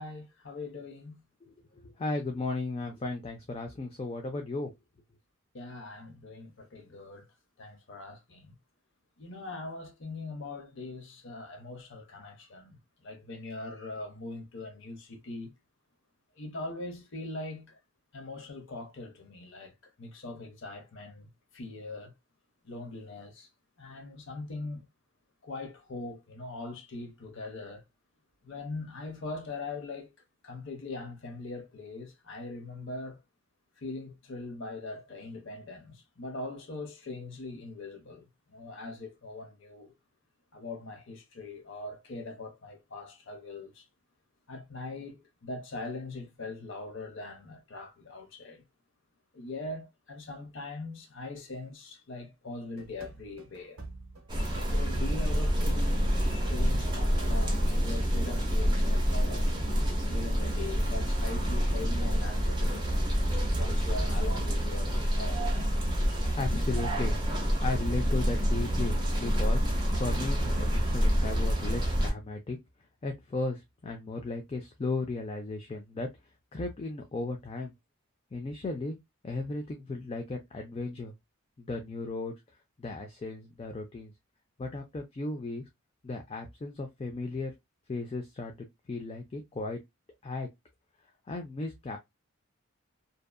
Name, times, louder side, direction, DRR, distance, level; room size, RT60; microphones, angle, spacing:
voice 1, 0.0-1.2 5.5-7.3 7.6-8.5 9.2-15.5 16.4-17.8 18.1-21.3 21.5-22.1 22.6-23.5 23.8-24.9 25.4-27.8 28.4-30.1 30.4-33.2 33.8-39.9 40.5-43.9 44.5-48.6 49.3-53.8 54.7-59.6 60.1-63.0 63.6-65.6 66.4-66.6, left 2 dB, 55° left, 0.6 m, -41 dB
voice 2, 1.4-4.8 66.0-67.1 67.6-72.6 73.0-76.1 76.5-77.7 78.3-79.0 79.2-81.1 81.6-82.3 82.8-84.1 84.6-85.7 86.0-87.5 87.9-89.8 90.2-90.5 91.3-92.0, left 3 dB, 25° left, 0.3 m, -35 dB
sound 1, 52.8-64.1, right 3 dB, 70° right, 0.6 m, -48 dB
sound 2, 54.3-72.1, equal, 20° right, 0.7 m, -27 dB
2.7 x 2.4 x 2.2 m
head